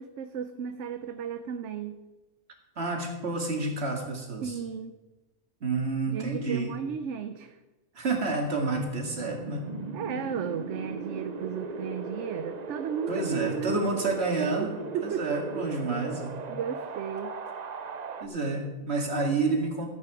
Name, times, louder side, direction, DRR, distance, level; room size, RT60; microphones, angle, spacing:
voice 1, 0.0-2.0 4.4-4.9 6.1-7.6 9.9-13.9 14.6-14.7 14.9-15.7 16.5-17.4, right 8 dB, 75° right, 9 dB, 1.0 m, -34 dB
voice 2, 2.8-4.5 5.6-6.7 7.9-9.7 13.1-14.8 15.0-16.5 18.2-19.9, right 3 dB, 60° right, 2 dB, 2.3 m, -29 dB
Wind, 8.1-18.3, right 4 dB, 40° right, 0.7 m, -38 dB
13.5 x 8.4 x 4.8 m, 1.1 s
omnidirectional pair, 1.2 m